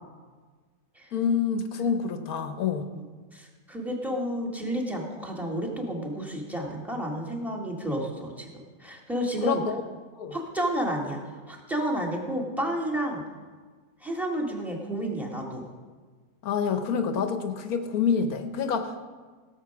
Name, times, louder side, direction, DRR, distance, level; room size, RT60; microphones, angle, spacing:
voice 1, 1.1-2.9 9.4-9.8 10.2-10.4 16.4-19.1, left 6 dB, 65° left, 7 dB, 1.3 m, -27 dB
voice 2, 3.3-8.5 8.8-9.6 10.3-11.2 11.5-13.2 14.0-15.6, right 1 dB, ahead, 0 dB, 1.8 m, -31 dB
17.0 x 7.4 x 5.9 m, 1.5 s
omnidirectional pair, 1.7 m